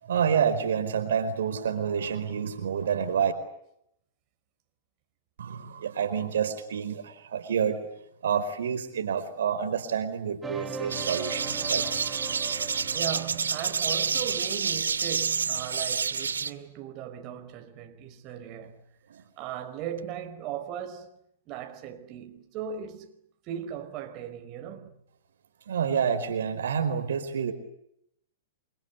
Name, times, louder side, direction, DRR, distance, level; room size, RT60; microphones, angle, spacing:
voice 1, 0.0-3.3 5.4-7.8 8.2-11.8 19.1-19.5 25.7-27.5, right 7 dB, 75° right, 4.7 m, -28 dB
sound 1, 10.4-15.4, right 4 dB, 10° right, 3.5 m, -41 dB
sound 2, 10.9-16.5, right 6 dB, 90° right, 2.1 m, -29 dB
voice 2, 12.9-18.8 19.4-21.2 21.5-23.2 23.5-25.0, right 9 dB, 40° right, 5.1 m, -37 dB
29.5 x 24.5 x 8.3 m
hypercardioid pair, 120°, 0 cm